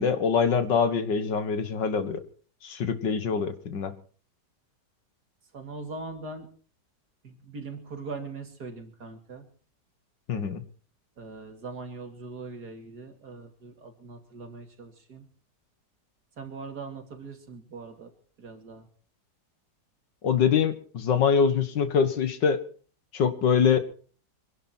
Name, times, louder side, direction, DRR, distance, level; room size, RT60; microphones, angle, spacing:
voice 1, 0.0-2.2 2.6-3.9 10.3-10.6 20.2-22.6 23.1-23.8, left 6 dB, 80° left, 10 dB, 2.1 m, -24 dB
voice 2, 5.5-6.5 7.2-9.4 11.2-15.3 16.4-18.1 18.4-18.9, right 3 dB, 60° right, 5 dB, 3.0 m, -41 dB
25.0 x 11.5 x 4.4 m, 0.42 s
omnidirectional pair, 1.9 m